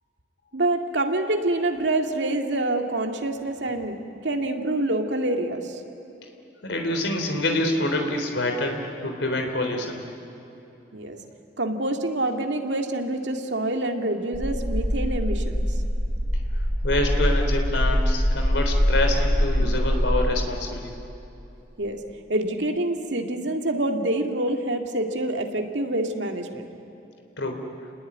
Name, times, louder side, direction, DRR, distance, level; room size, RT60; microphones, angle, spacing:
voice 1, 0.5-4.0 4.2-5.8 10.9-11.2 11.6-15.6 19.6-19.8 21.8-22.0 22.3-26.6, right 1 dB, 75° right, 4 dB, 2.3 m, -26 dB
voice 2, 6.6-10.0 16.6-21.0 27.4-27.6, left 2 dB, 80° left, 4 dB, 3.7 m, -26 dB
sound 1, 14.3-20.3, equal, 5° right, 4.1 m, -23 dB
30.0 x 20.5 x 9.6 m, 3.0 s
head